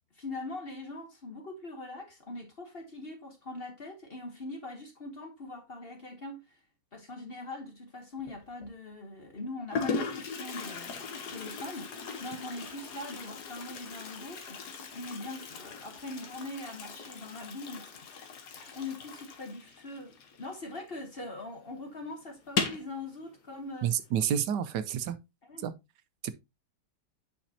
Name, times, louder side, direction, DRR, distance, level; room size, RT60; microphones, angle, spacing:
voice 1, 0.1-6.6 6.9-11.0 11.3-11.9 12.2-18.0 18.5-23.9 25.5-25.7, left 2 dB, 40° left, 1.1 m, -42 dB
Toilet flush, 8.2-8.7 9.4-9.5 9.7-21.0 21.3-21.4 21.7-21.8 22.4-22.9, left 5 dB, 70° left, 1.6 m, -38 dB
voice 2, 23.8-25.2 25.6-25.7 26.2-26.3, right 9 dB, 75° right, 1.3 m, -29 dB
8.7 x 5.2 x 2.7 m
omnidirectional pair, 1.9 m